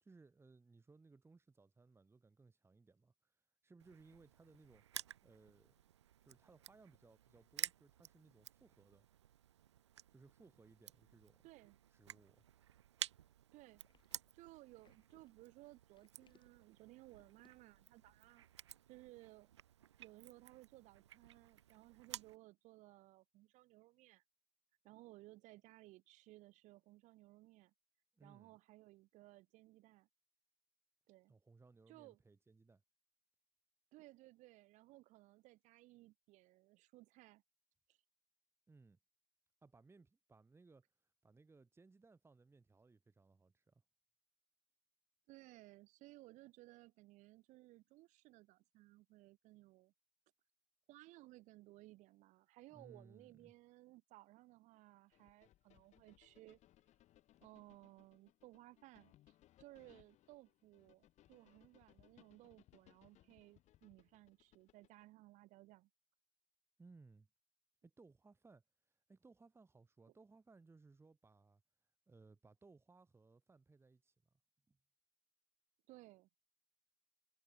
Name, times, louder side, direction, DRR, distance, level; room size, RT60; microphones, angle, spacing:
voice 1, 0.0-4.8 5.2-5.8 6.2-9.1 10.1-11.4 11.9-12.5 28.1-28.5 31.3-32.8 38.7-39.0 39.6-43.8 52.7-53.5 66.8-67.3 67.8-71.6 72.1-74.1 74.7-74.8, right 3 dB, 15° right, 1.6 m, -65 dB
Crushing, 3.8-22.4, right 11 dB, 80° right, 1.0 m, -53 dB
voice 2, 11.4-11.8 13.5-18.4 18.9-19.5 20.0-24.2 24.8-27.7 28.2-30.1 31.1-31.3 31.9-32.2 33.9-37.4 37.9-38.0 45.3-49.9 50.9-56.6 57.4-65.9 75.9-76.3, right 19 dB, 55° right, 2.4 m, -61 dB
sound 1, 13.6-18.4, left 7 dB, 35° left, 2.5 m, -76 dB
sound 2, 55.1-65.1, left 14 dB, 55° left, 6.0 m, -70 dB
figure-of-eight pair, 60°, 14 cm